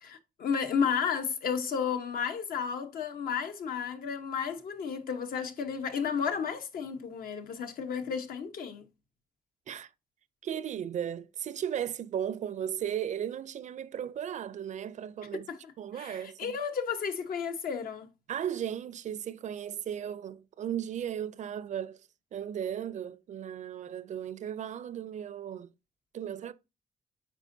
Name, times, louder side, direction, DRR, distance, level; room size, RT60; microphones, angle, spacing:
voice 1, 0.0-8.8 15.5-15.6 16.0-18.1, left 6 dB, 75° left, 1.1 m, -32 dB
voice 2, 10.4-15.5 15.8-16.6 18.3-22.0 22.3-25.7 26.1-26.5, right 9 dB, 55° right, 0.4 m, -36 dB
9.0 x 4.4 x 2.7 m
wide cardioid pair, 165°, 15 cm